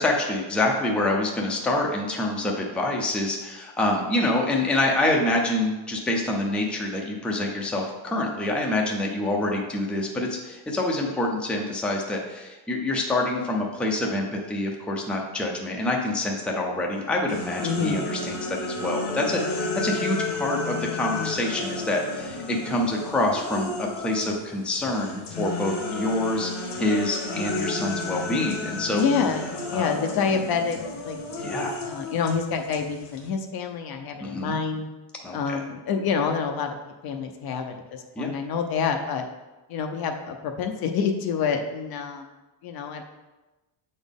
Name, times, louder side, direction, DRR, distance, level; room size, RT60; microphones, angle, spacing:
voice 1, 0.0-29.0 29.7-29.9 31.4-31.8 34.2-34.6 35.2-35.6 38.2-38.3, left 1 dB, ahead, -1 dB, 0.5 m, -26 dB
sound 1, 17.3-24.4 24.7-33.3, left 3 dB, 85° left, 1.5 m, -32 dB
voice 2, 17.6-18.1 28.9-30.8 31.0-31.6 31.8-34.9 35.3-36.8 37.0-39.2 39.7-42.3 42.6-43.0, left 6 dB, 50° left, 5 dB, 0.6 m, -27 dB
7.0 x 4.2 x 3.5 m, 1.1 s
cardioid pair, 135°, 49 cm